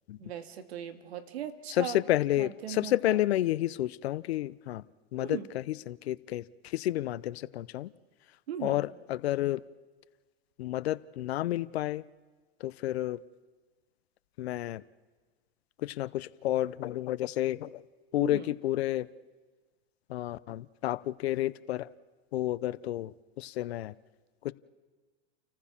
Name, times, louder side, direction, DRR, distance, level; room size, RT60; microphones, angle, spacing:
voice 1, 0.2-2.0 2.4-3.2 5.2-5.5 8.5-8.8 18.2-18.5, right 9 dB, 80° right, 9 dB, 2.1 m, -39 dB
voice 2, 1.7-4.8 5.1-7.9 8.6-9.6 10.6-12.0 12.6-13.2 14.4-14.8 15.8-17.8 18.1-19.1 20.1-21.9 22.3-24.0 24.4-24.5, left 14 dB, 80° left, 17 dB, 0.7 m, -31 dB
29.5 x 14.5 x 7.3 m, 1.4 s
hypercardioid pair, 120°, 31 cm